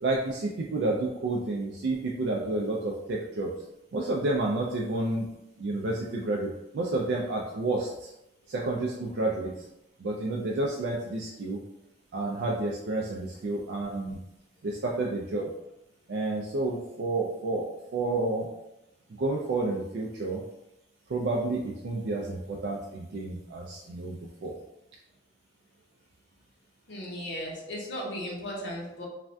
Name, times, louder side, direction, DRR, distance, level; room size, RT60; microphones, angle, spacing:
voice 1, 0.0-3.5 3.9-5.3 5.6-8.1 8.5-9.7 10.0-11.6 12.1-14.2 14.6-15.5 16.1-18.5 19.1-20.4 21.1-24.5, right 2 dB, 60° right, -2 dB, 0.3 m, -30 dB
voice 2, 26.9-29.1, equal, 65° left, -3 dB, 0.7 m, -36 dB
3.2 x 2.2 x 2.5 m, 0.89 s
head